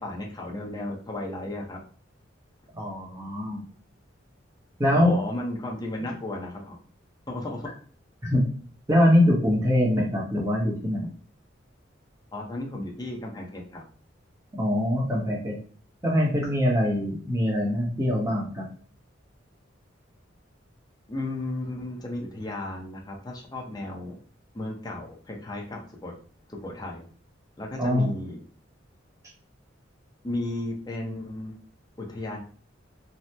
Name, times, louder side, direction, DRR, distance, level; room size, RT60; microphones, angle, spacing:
voice 1, 0.0-1.8 4.9-6.8 7.3-7.7 12.3-13.8 21.1-24.2 24.5-26.2 26.5-27.0 27.6-28.4 30.2-31.6 32.0-32.4, left 1 dB, 20° left, -1 dB, 0.5 m, -34 dB
voice 2, 2.7-3.6 4.8-5.2 8.3-8.4 8.9-11.1 14.5-15.6 16.0-18.7 27.8-28.1, left 1 dB, 15° right, -2 dB, 0.8 m, -23 dB
2.8 x 2.0 x 3.2 m, 0.44 s
head